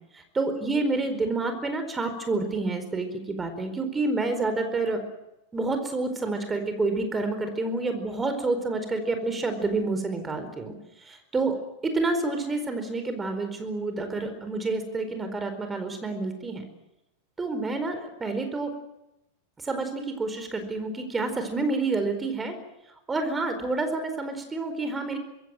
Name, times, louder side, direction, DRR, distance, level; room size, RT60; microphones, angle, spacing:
voice 1, 0.1-5.0 5.5-11.6 11.8-16.6 17.4-18.7 19.6-22.6 23.1-25.2, right 3 dB, 15° right, 8 dB, 4.5 m, -28 dB
25.5 x 22.5 x 7.8 m, 0.92 s
figure-of-eight pair, 90°, 0 cm